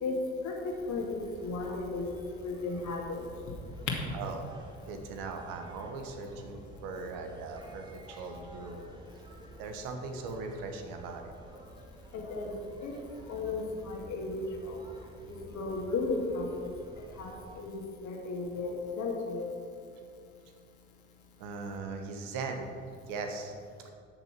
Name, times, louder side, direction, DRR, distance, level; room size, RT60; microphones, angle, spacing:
voice 1, 0.4-3.2 12.1-12.5 12.8-13.0 13.3-14.8 15.5-16.7 17.2-19.5, left 3 dB, 50° left, -1 dB, 2.5 m, -35 dB
sound 1, 0.7-17.6, equal, 10° right, 1.9 m, -51 dB
voice 2, 4.1-4.4 4.9-8.8 9.6-11.3 21.4-22.7 23.1-23.5 23.8-23.9, right 4 dB, 60° right, 4 dB, 1.6 m, -39 dB
13.0 x 6.8 x 6.1 m, 2.3 s
figure-of-eight pair, 55°, 38 cm